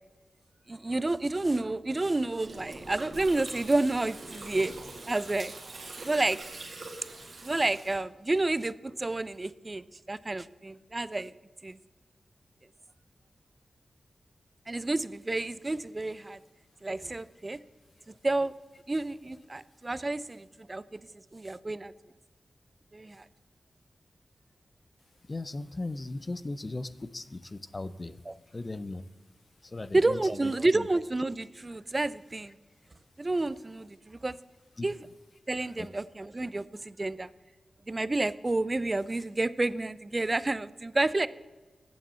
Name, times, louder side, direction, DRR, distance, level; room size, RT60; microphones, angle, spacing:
voice 1, 0.7-4.7 5.1-5.5 6.0-6.4 7.4-11.3 11.6-11.8 14.7-16.4 16.8-17.6 18.1-18.5 18.9-21.1 21.3-21.9 22.9-23.2 28.3-28.4 29.9-32.6 33.2-34.4 34.8-35.0 35.5-37.3 37.9-41.3, right 2 dB, 25° right, 17 dB, 0.4 m, -30 dB
Gurgling, 2.4-8.0, right 2 dB, 55° right, 2.0 m, -43 dB
voice 2, 25.3-28.2 28.5-29.1 29.6-30.9 34.8-34.9 35.8-35.9, left 2 dB, 30° left, 14 dB, 0.5 m, -38 dB
8.5 x 7.3 x 6.7 m, 1.3 s
wide cardioid pair, 120°, 0 cm